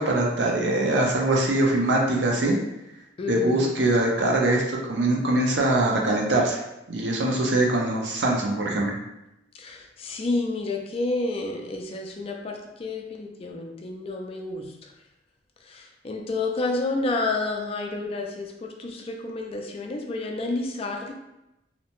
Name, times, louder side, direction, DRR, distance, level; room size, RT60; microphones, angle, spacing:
voice 1, 0.0-2.5 3.3-6.6 6.9-9.0, right 1 dB, 70° right, -1 dB, 0.6 m, -23 dB
voice 2, 3.2-3.7 9.5-14.9 15.6-21.1, left 2 dB, 30° left, 2 dB, 0.3 m, -30 dB
2.7 x 2.1 x 2.9 m, 0.90 s
head